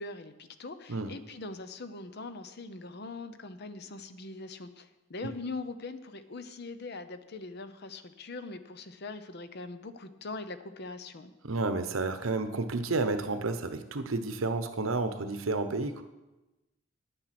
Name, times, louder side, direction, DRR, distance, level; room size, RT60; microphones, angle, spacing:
voice 1, 0.0-11.3, left 3 dB, 55° left, 11 dB, 0.8 m, -42 dB
voice 2, 11.4-16.0, right 3 dB, 80° right, 9 dB, 0.9 m, -31 dB
9.8 x 9.0 x 6.0 m, 1.0 s
head